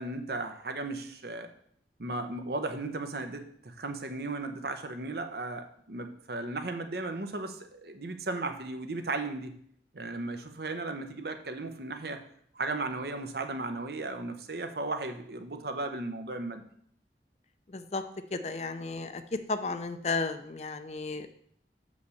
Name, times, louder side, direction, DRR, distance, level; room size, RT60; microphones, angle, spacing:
voice 1, 0.0-1.5 2.0-9.5 9.9-12.2 12.5-16.6, right 2 dB, 65° right, 7 dB, 0.9 m, -35 dB
voice 2, 17.7-18.0 18.3-21.3, left 3 dB, 35° left, 9 dB, 0.5 m, -33 dB
6.4 x 5.2 x 7.0 m, 0.65 s
head